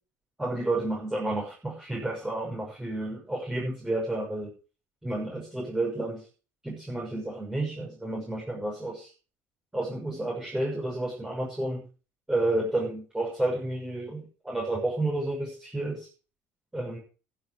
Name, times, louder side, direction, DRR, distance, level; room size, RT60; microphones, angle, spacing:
voice 1, 0.4-4.5 5.0-6.2 6.6-9.1 9.7-11.8 12.3-16.1 16.7-17.0, right 2 dB, 10° right, -3 dB, 6.3 m, -31 dB
12.0 x 9.6 x 6.3 m, 0.37 s
figure-of-eight pair, 55°, 7 cm